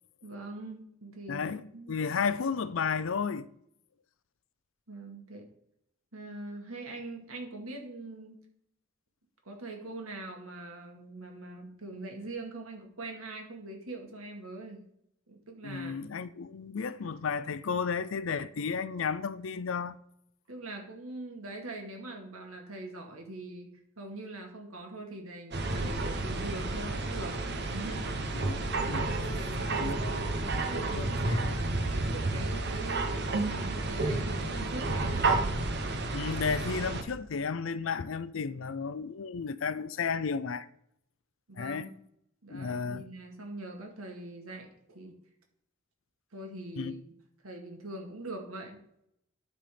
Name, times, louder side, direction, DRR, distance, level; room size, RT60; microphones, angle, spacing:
voice 1, 0.2-2.0 4.9-5.5 6.1-8.4 9.5-14.8 15.3-15.9 20.5-28.3 29.3-33.1 33.5-35.3 41.5-42.0 42.4-45.1 46.3-47.0 47.4-48.8, right 2 dB, 90° right, 2.1 m, -42 dB
voice 2, 1.3-3.5 15.6-20.0 28.3-29.1 29.8-30.0 31.0-31.6 36.1-40.7 41.6-41.9 42.5-43.0 46.8-47.0, left 5 dB, 65° left, 0.5 m, -33 dB
sound 1, 25.5-37.0, right 2 dB, 50° right, 1.1 m, -31 dB
12.0 x 4.2 x 5.1 m
head